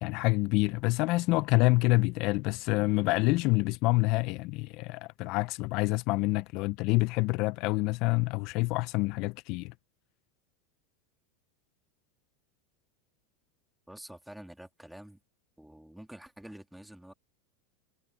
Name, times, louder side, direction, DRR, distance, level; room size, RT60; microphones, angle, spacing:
voice 1, 0.0-9.7, left 23 dB, 55° left, 0.5 m, -27 dB
voice 2, 13.9-15.2 15.6-17.1, right 1 dB, ahead, 2.6 m, -48 dB
supercardioid pair, 120°, 0 cm